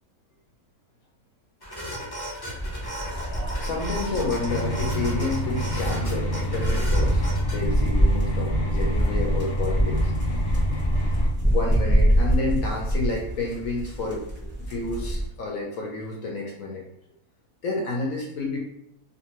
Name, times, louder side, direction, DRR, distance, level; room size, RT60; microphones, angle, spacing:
sound 1, 1.6-7.6, equal, 40° left, 0.3 m, -36 dB
sound 2, 2.6-15.3, equal, 10° right, 0.7 m, -25 dB
voice 1, 3.5-10.1 11.5-16.8 17.6-18.6, left 3 dB, 70° left, -1 dB, 0.9 m, -30 dB
sound 3, 4.4-11.3, equal, 85° left, 1.2 m, -29 dB
2.5 x 2.5 x 2.9 m, 0.78 s
omnidirectional pair, 1.7 m